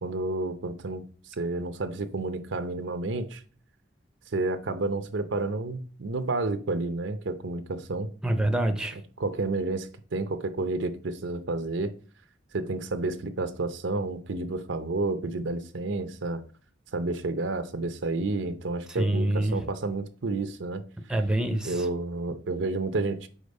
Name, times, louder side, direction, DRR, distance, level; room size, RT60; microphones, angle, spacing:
voice 1, 0.0-1.0 1.4-3.4 4.3-8.1 9.2-11.9 12.5-16.4 16.9-20.8 21.6-23.3, right 2 dB, 85° right, 0.7 m, -30 dB
voice 2, 8.2-9.0 18.9-19.6 21.1-21.9, right 1 dB, 5° right, 0.6 m, -26 dB
5.0 x 4.4 x 5.3 m
head